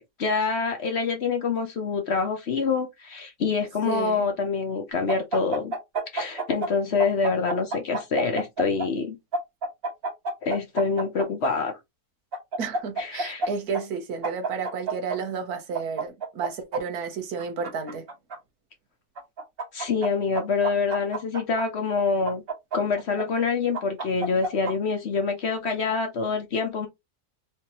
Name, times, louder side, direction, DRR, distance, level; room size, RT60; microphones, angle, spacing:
voice 1, 0.0-5.7 6.1-9.2 10.4-11.7 13.0-13.5 19.7-22.4 22.7-26.9, left 4 dB, 50° left, 1.0 m, -26 dB
voice 2, 3.8-4.2 12.6-18.0, right 5 dB, 80° right, 1.4 m, -32 dB
sound 1, 5.1-6.7 7.0-8.9 9.3-11.5 12.3-13.5 13.7-13.8 14.2-15.2 15.7-16.8 17.4-18.4 19.2-20.1 20.3-21.6 22.3-23.2 23.7-24.7, right 3 dB, 40° right, 1.5 m, -29 dB
3.4 x 3.2 x 2.9 m
omnidirectional pair, 1.6 m